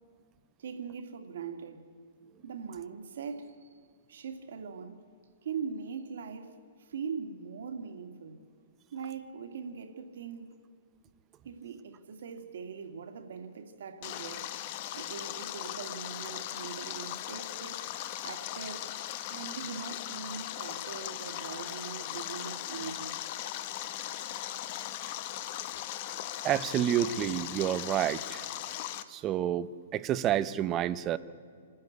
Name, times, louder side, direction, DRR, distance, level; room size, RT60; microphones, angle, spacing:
voice 1, 0.6-1.9 2.4-3.7 4.1-5.0 5.4-8.4 8.9-10.6 11.4-14.5 14.9-17.8 18.2-18.9 19.3-23.2, right 6 dB, 60° right, 2.2 m, -41 dB
Stream, 14.0-29.0, left 13 dB, 30° left, 0.8 m, -38 dB
voice 2, 26.4-28.4 29.1-31.2, right 11 dB, 15° right, 0.5 m, -29 dB
27.0 x 13.5 x 9.6 m
hypercardioid pair, 170°, 0 cm